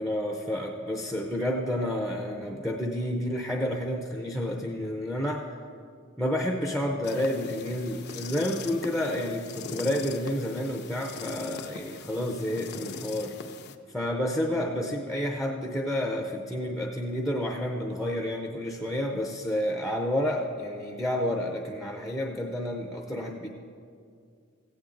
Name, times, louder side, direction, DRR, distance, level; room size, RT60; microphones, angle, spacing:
voice 1, 0.0-5.5 6.2-13.3 13.9-23.5, left 1 dB, ahead, 2 dB, 0.6 m, -30 dB
sound 1, 7.0-13.7, left 5 dB, 55° left, 0.5 m, -41 dB
15.5 x 8.6 x 3.8 m, 2.2 s
head